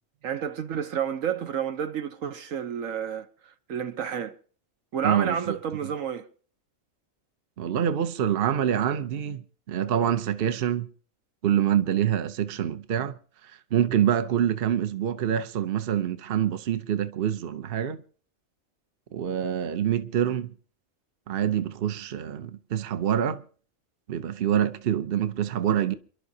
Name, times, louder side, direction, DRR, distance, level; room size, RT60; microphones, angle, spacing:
voice 1, 0.2-4.4 4.9-6.3, right 8 dB, 75° right, 1.3 m, -30 dB
voice 2, 5.0-5.6 7.6-10.9 11.4-13.1 13.4-18.0 19.1-20.5 21.3-23.4 24.1-25.9, right 9 dB, 50° right, 0.9 m, -26 dB
28.5 x 11.5 x 2.8 m
omnidirectional pair, 1.4 m